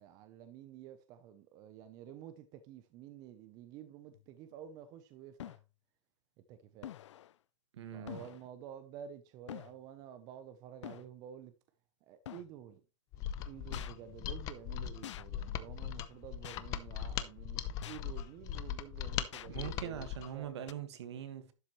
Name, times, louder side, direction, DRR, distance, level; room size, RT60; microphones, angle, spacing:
voice 1, 0.0-5.6 6.5-6.9 7.9-11.5 12.0-12.8 13.5-20.5, right 9 dB, 25° right, 0.7 m, -51 dB
sound 1, 4.1-4.3 5.4-5.7 6.8-7.3 8.1-8.4 9.5-9.8 10.8-11.1 12.3-12.5 13.7-13.9 15.0-15.3 16.4-16.7 17.8-18.1 19.3-19.5 20.7-20.8, left 12 dB, 65° left, 0.5 m, -46 dB
voice 2, 7.7-8.2 19.5-21.5, right 9 dB, 60° right, 1.6 m, -42 dB
Mechanisms, 13.1-20.3, left 10 dB, 20° left, 0.6 m, -39 dB
11.5 x 7.1 x 3.1 m
hypercardioid pair, 160°, 16 cm